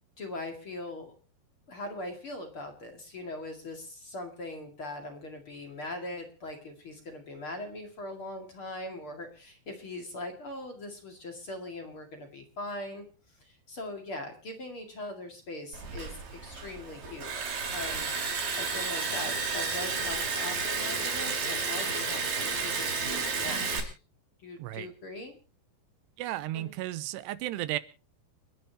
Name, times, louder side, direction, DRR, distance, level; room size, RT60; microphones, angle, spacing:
voice 1, 0.2-1.1 1.7-23.9 24.4-25.4 26.5-26.7, left 2 dB, 40° left, 5 dB, 2.5 m, -41 dB
Liquid, 15.7-23.8, right 4 dB, 65° right, 5.3 m, -32 dB
voice 2, 26.2-27.8, right 15 dB, 90° right, 15 dB, 3.0 m, -34 dB
29.5 x 10.5 x 2.9 m, 0.34 s
omnidirectional pair, 4.7 m